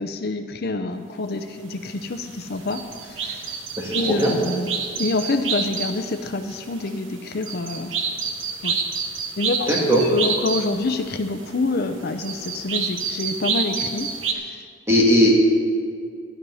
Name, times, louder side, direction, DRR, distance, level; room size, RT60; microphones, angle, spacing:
voice 1, 0.0-3.6 3.9-7.9 8.6-8.8 9.4-14.1 14.3-14.6, left 3 dB, 55° left, 7 dB, 0.6 m, -27 dB
sound 1, 1.8-14.3, right 5 dB, 85° right, 1.2 m, -29 dB
voice 2, 3.8-4.3 9.7-10.0 14.9-15.3, equal, 15° right, -3 dB, 2.5 m, -18 dB
12.5 x 11.0 x 5.6 m, 2.3 s
head